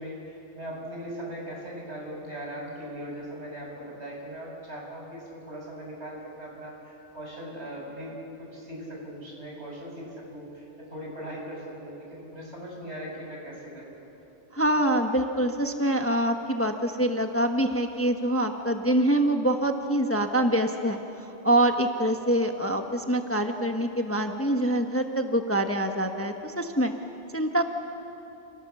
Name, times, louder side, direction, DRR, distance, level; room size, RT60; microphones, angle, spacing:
voice 1, 0.0-8.1 8.4-10.7 10.9-14.0, equal, 70° right, -2 dB, 7.4 m, -39 dB
voice 2, 14.5-21.0 21.4-26.9 27.3-27.6, right 1 dB, 10° left, 4 dB, 1.2 m, -25 dB
29.0 x 28.5 x 7.2 m, 2.9 s
omnidirectional pair, 1.2 m